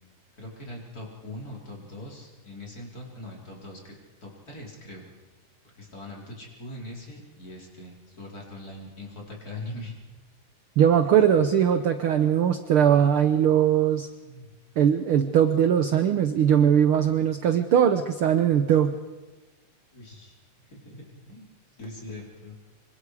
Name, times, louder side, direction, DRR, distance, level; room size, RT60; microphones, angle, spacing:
voice 1, 0.4-5.0 5.8-9.9 14.2-14.5 19.9-20.4 20.7-21.5 21.8-22.5, left 1 dB, 30° left, -2 dB, 4.9 m, -41 dB
voice 2, 10.8-14.1 14.8-18.9, right 9 dB, 60° right, 8 dB, 1.5 m, -20 dB
26.0 x 25.0 x 5.0 m, 1.2 s
omnidirectional pair, 3.4 m